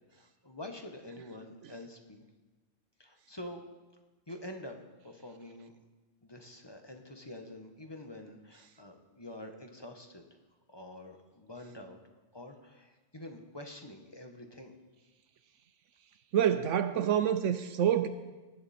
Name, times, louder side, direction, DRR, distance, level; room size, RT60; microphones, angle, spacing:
voice 1, 0.1-2.2 3.0-3.6 4.3-5.8 6.2-10.3 10.7-12.0 12.3-14.7, left 1 dB, 20° left, 1.2 m, -47 dB
voice 2, 16.3-18.1, right 9 dB, 80° right, 1.0 m, -27 dB
18.5 x 11.0 x 4.3 m
omnidirectional pair, 1.3 m